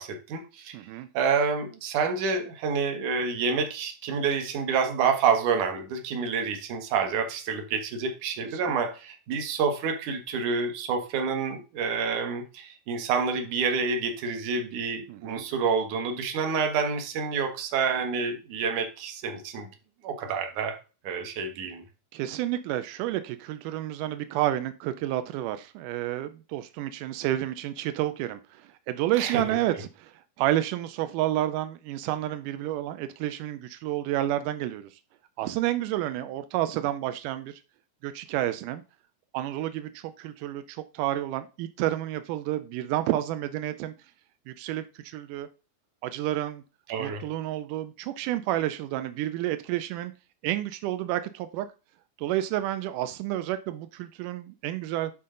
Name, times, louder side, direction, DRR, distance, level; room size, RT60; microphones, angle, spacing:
voice 1, 0.0-0.8 1.1-19.7 20.0-20.8 21.0-21.8 29.2-29.4 29.7-29.8 46.9-47.2, right 5 dB, 65° right, 2.4 m, -28 dB
voice 2, 0.7-1.1 8.5-8.6 15.1-15.4 22.1-28.4 28.9-30.1 30.4-34.9 35.4-37.6 38.0-38.8 39.3-43.9 44.5-45.5 46.0-46.6 47.0-50.1 50.4-51.7 52.2-55.1, right 13 dB, 85° right, 1.8 m, -30 dB
11.0 x 4.3 x 3.7 m
omnidirectional pair, 4.3 m